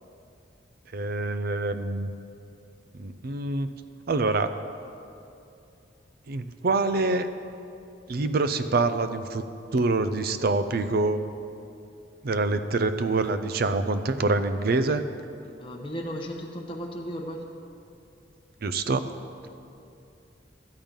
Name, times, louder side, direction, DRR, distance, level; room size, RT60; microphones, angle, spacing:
voice 1, 0.9-2.1 3.0-3.7 4.1-4.5 6.3-7.3 8.1-9.4 9.7-11.2 12.2-15.0 18.6-19.0, right 3 dB, 55° right, 10 dB, 0.5 m, -25 dB
voice 2, 15.6-17.5, equal, 30° left, 0 dB, 0.8 m, -35 dB
12.0 x 5.3 x 8.9 m, 2.7 s
head